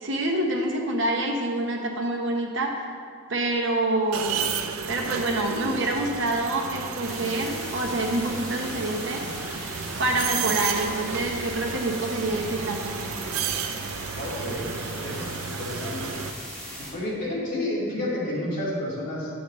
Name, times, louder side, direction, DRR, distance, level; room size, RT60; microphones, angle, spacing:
voice 1, 0.0-2.8 3.3-4.5 4.9-9.2 10.0-13.0, right 2 dB, 60° right, 0 dB, 0.9 m, -26 dB
sound 1, 4.1-16.3, right 7 dB, 85° right, 0.5 m, -33 dB
sound 2, 7.0-16.9, equal, 5° left, 1.9 m, -38 dB
voice 2, 14.2-16.0 16.8-19.3, left 1 dB, 35° left, -8 dB, 2.3 m, -30 dB
10.0 x 7.2 x 3.1 m, 2.1 s
head